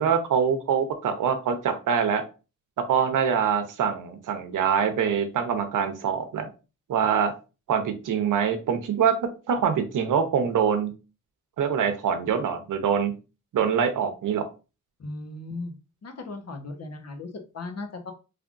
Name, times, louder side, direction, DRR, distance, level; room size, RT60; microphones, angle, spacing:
voice 1, 0.0-2.2 2.9-6.5 6.9-7.3 7.7-10.9 11.6-13.1 13.5-14.5, right 7 dB, 75° right, 8 dB, 0.8 m, -24 dB
voice 2, 15.0-15.7 16.0-17.3 17.5-18.1, left 2 dB, 55° left, 4 dB, 1.0 m, -36 dB
3.4 x 3.4 x 2.5 m, 0.31 s
cardioid pair, 85°, 31 cm